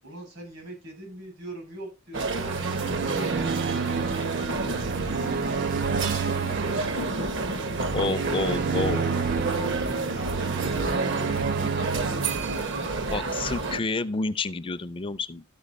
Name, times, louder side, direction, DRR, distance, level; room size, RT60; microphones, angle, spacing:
voice 1, 0.0-2.6 3.0-4.0 4.4-7.9 8.7-8.8 9.5-12.9, right 1 dB, 80° right, 7.2 m, -41 dB
sound 1, 2.1-13.8, right 3 dB, 60° right, 1.1 m, -30 dB
sound 2, 2.3-13.6, right 5 dB, 45° right, 0.5 m, -30 dB
voice 2, 7.9-9.2 13.1-15.4, left 3 dB, 25° left, 0.4 m, -29 dB
13.0 x 5.6 x 4.1 m
head